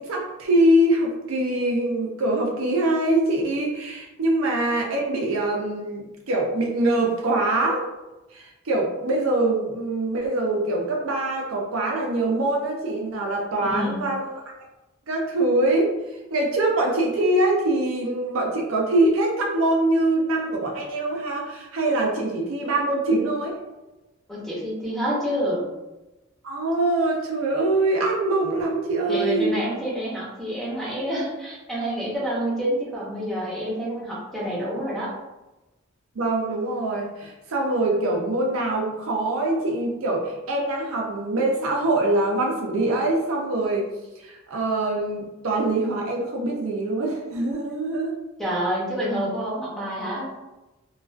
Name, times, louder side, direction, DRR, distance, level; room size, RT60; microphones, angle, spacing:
voice 1, 0.0-7.8 8.3-14.3 15.1-15.9 16.3-23.6 26.4-29.5 36.2-43.9 44.2-48.2, right 2 dB, 80° right, 0 dB, 0.5 m, -23 dB
voice 2, 13.6-14.1 24.3-25.6 29.1-35.1 48.4-50.3, equal, ahead, -6 dB, 0.6 m, -28 dB
2.3 x 2.2 x 2.4 m, 1.0 s
head